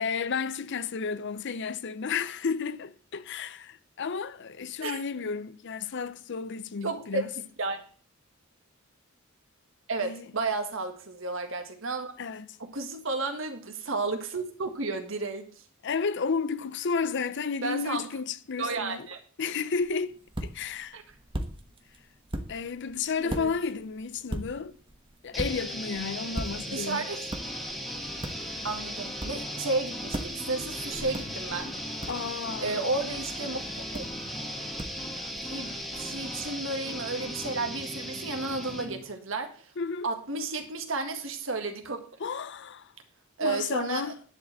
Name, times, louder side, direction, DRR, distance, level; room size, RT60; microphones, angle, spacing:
voice 1, 0.0-7.3 10.0-10.3 12.2-12.6 15.8-19.1 19.4-21.0 22.5-24.8 25.2-27.0 32.1-32.8 39.8-40.1 42.2-42.9 43.4-44.2, left 5 dB, 55° left, 0.5 m, -32 dB
voice 2, 6.8-7.8 9.9-12.1 12.6-15.5 17.6-18.1 18.6-19.2 20.9-21.0 23.2-23.5 26.7-27.2 28.6-31.8 32.6-33.6 33.9-34.0 35.4-39.7 40.0-42.0 43.4-44.1, right 3 dB, 65° right, 1.7 m, -32 dB
sound 1, 19.7-36.5, right 1 dB, 25° right, 1.2 m, -41 dB
sound 2, 25.3-39.0, equal, ahead, 1.5 m, -37 dB
sound 3, 27.4-38.9, left 1 dB, 20° left, 1.3 m, -46 dB
10.5 x 4.8 x 7.7 m
head